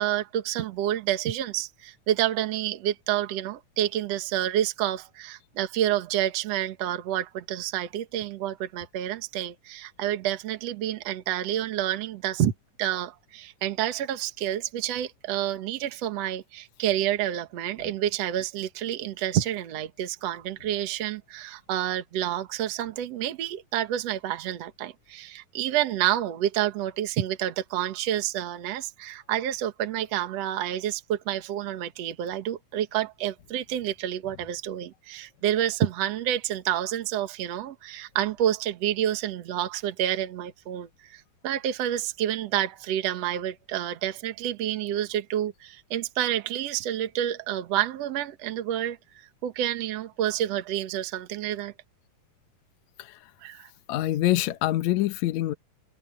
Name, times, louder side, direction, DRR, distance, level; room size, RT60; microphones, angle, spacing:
voice 1, 0.0-12.5 12.8-49.0 49.4-51.7 53.4-53.7, right 11 dB, 60° right, 2.2 m, -29 dB
voice 2, 53.9-55.5, left 15 dB, 70° left, 2.1 m, -25 dB
omnidirectional pair, 3.7 m